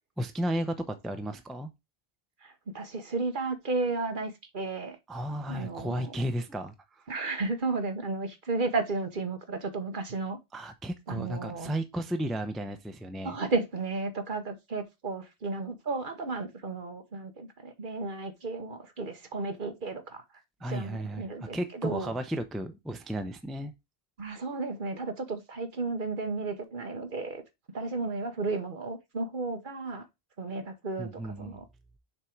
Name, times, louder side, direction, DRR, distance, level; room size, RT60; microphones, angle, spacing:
voice 1, 0.2-1.7 5.1-7.0 10.5-13.4 20.6-23.7 31.0-31.6, right 1 dB, ahead, 0.6 m, -34 dB
voice 2, 2.4-5.0 5.5-6.2 7.1-10.4 11.1-11.7 13.2-20.2 20.7-22.1 24.2-27.4 27.7-30.1 30.4-31.7, right 3 dB, 55° right, 1.2 m, -33 dB
6.7 x 3.7 x 4.4 m
omnidirectional pair, 1.1 m